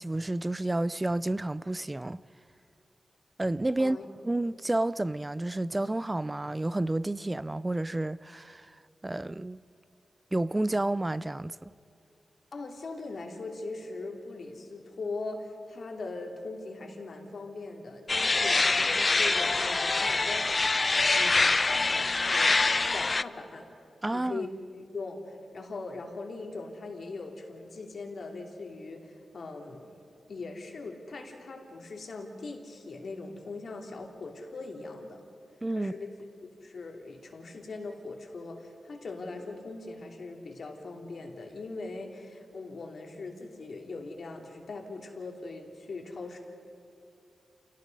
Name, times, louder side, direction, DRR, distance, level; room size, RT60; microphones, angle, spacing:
voice 1, 0.0-2.2 3.4-4.0 4.2-8.7 9.0-9.6 10.3-11.7 24.0-24.5 35.6-35.9, right 2 dB, 20° right, 0.4 m, -30 dB
voice 2, 12.5-20.7 20.9-21.5 21.9-22.6 22.9-23.7 24.1-24.5 24.9-29.9 30.3-35.2 35.7-36.1 36.6-46.4, left 3 dB, 60° left, 2.9 m, -40 dB
sound 1, 18.1-23.2, left 3 dB, 35° left, 0.5 m, -25 dB
28.5 x 18.0 x 5.3 m
wide cardioid pair, 95°, 0 cm